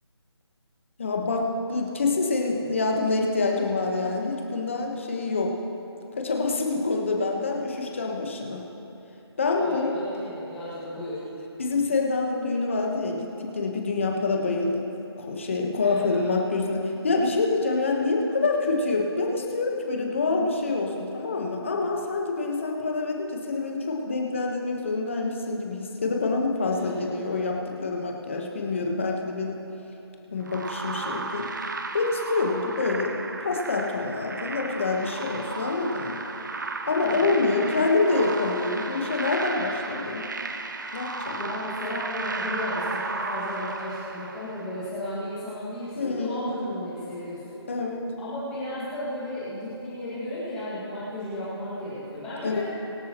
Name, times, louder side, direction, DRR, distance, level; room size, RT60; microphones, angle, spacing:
voice 1, 1.0-5.5 6.1-8.6 9.4-9.9 11.6-14.9 15.2-29.6 30.3-31.7 31.9-36.3 36.9-40.3 40.9-41.4 46.0-46.5 47.7-48.1 52.4-52.6, left 3 dB, 30° left, 1 dB, 1.2 m, -26 dB
voice 2, 9.5-11.2 15.8-16.2 26.7-27.1 37.0-37.4 41.4-47.6 48.2-52.6, left 1 dB, 5° left, -11 dB, 2.0 m, -34 dB
sound 1, 30.5-44.8, right 3 dB, 45° right, 0.8 m, -34 dB
24.0 x 8.3 x 3.0 m, 3.0 s
figure-of-eight pair, 175°, 14 cm